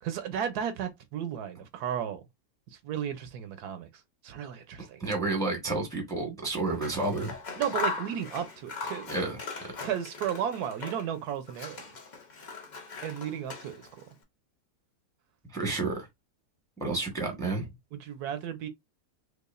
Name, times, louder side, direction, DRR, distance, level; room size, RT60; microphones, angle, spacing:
voice 1, 0.0-2.2 2.7-3.9 4.2-5.0 7.6-9.1 9.8-11.8 13.0-14.0 17.9-18.7, right 9 dB, 75° right, 1.1 m, -34 dB
voice 2, 4.8-7.4 9.1-9.4 15.5-16.1 16.8-17.7, right 3 dB, 5° left, 0.8 m, -30 dB
Scissors, 6.7-11.2 11.5-14.0, left 4 dB, 50° left, 0.5 m, -39 dB
4.7 x 2.3 x 2.4 m
omnidirectional pair, 1.7 m